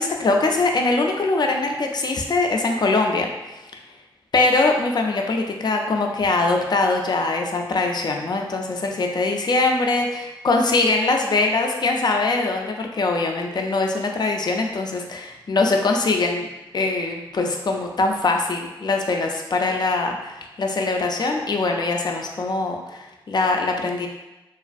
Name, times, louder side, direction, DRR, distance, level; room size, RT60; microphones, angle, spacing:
voice 1, 0.0-3.3 4.3-16.5 16.7-24.1, left 3 dB, 45° left, 2 dB, 0.4 m, -22 dB
2.4 x 2.4 x 2.3 m, 1.0 s
supercardioid pair, 45°, 10 cm